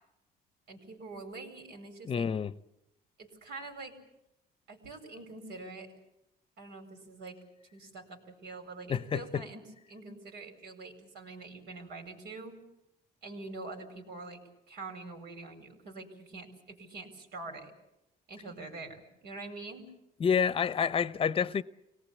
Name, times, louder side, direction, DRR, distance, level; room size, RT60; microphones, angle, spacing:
voice 1, 0.7-2.3 3.2-4.0 4.7-5.9 6.6-7.4 7.7-12.6 13.2-14.4 14.7-17.7 18.3-19.9, right 3 dB, 80° right, 4.9 m, -45 dB
voice 2, 2.0-2.5 8.9-9.4 20.2-21.6, left 7 dB, 35° left, 0.8 m, -28 dB
25.0 x 18.5 x 8.5 m
cardioid pair, 110°, 17 cm